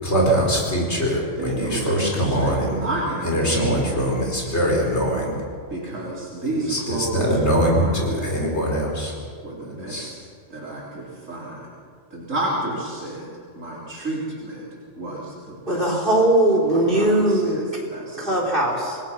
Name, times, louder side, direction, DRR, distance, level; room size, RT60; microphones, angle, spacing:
voice 1, 0.0-2.9 3.2-5.4 6.7-9.1 9.6-10.1, equal, 55° left, -1 dB, 4.8 m, -22 dB
voice 2, 1.4-4.1 5.7-8.4 9.4-10.2 10.5-11.7 12.1-14.7 14.9-16.0 16.7-18.6, right 2 dB, 70° right, -6 dB, 3.9 m, -31 dB
voice 3, 15.7-17.6 18.2-19.0, right 1 dB, 40° right, -2 dB, 4.0 m, -19 dB
27.0 x 19.0 x 5.9 m, 2.2 s
omnidirectional pair, 1.4 m